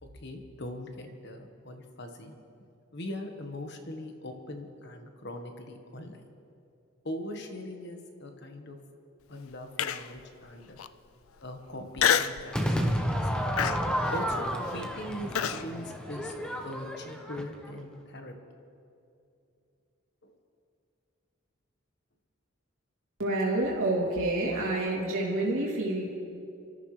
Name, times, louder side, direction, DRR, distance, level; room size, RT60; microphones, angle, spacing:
voice 1, 0.0-2.3 2.9-6.2 7.0-8.8 9.3-10.8 11.4-13.4 14.1-18.3 20.2-20.3, left 1 dB, 55° left, 4 dB, 1.4 m, -41 dB
Human voice, 9.8-10.2 10.8-10.9 12.0-12.4 12.9-13.2 13.6-15.6, left 8 dB, 85° left, 0.5 m, -27 dB
Crowd / Fireworks, 12.5-17.8, equal, 5° left, 0.9 m, -31 dB
voice 2, 23.2-26.1, right 2 dB, 70° right, -4 dB, 3.0 m, -28 dB
26.0 x 13.5 x 3.3 m, 2.6 s
head